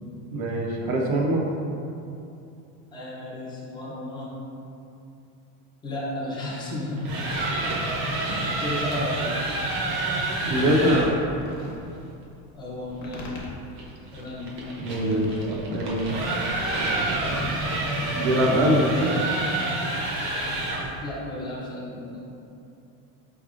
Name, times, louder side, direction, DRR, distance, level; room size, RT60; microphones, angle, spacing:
voice 1, 0.3-1.4 10.4-11.1 14.8-16.4 18.1-19.2, right 1 dB, 80° right, -1 dB, 0.9 m, -23 dB
voice 2, 2.9-4.3 5.8-7.1 8.2-9.4 12.5-13.2 14.1-14.6 21.0-22.2, left 1 dB, 10° left, -6 dB, 0.4 m, -33 dB
sound 1, 6.8-11.2 13.8-21.0, right 2 dB, 55° right, 0.8 m, -28 dB
sound 2, 11.2-18.0, left 2 dB, 45° left, 0.7 m, -43 dB
4.8 x 3.4 x 2.4 m, 2.7 s
cardioid pair, 170°, 41 cm